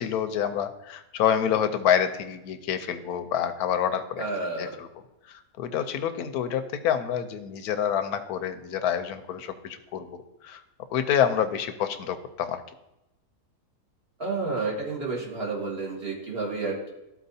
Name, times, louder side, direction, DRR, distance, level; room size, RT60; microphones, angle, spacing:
voice 1, 0.0-4.2 4.6-4.9 5.3-10.6 10.9-12.6, left 9 dB, 80° left, 9 dB, 1.1 m, -27 dB
voice 2, 4.2-4.7 14.2-16.9, right 3 dB, 40° right, -2 dB, 1.8 m, -30 dB
13.0 x 4.4 x 2.7 m, 0.93 s
omnidirectional pair, 1.7 m